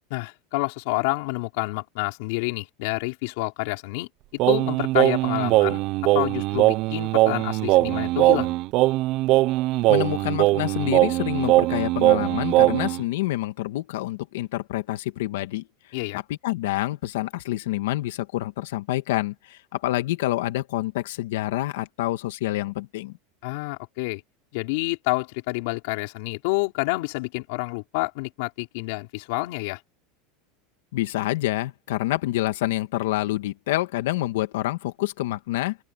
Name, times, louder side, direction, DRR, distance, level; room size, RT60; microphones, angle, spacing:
voice 1, 0.1-4.1 4.5-5.8 6.1-8.5 15.9-16.2 23.4-24.2 24.5-29.8, left 25 dB, 65° left, 4.3 m, -28 dB
Singing, 4.4-13.0, right 18 dB, 45° right, 0.5 m, -21 dB
voice 2, 9.9-15.6 16.1-23.1 30.9-35.8, left 16 dB, 80° left, 2.0 m, -27 dB
open air
supercardioid pair, 150°, 0 cm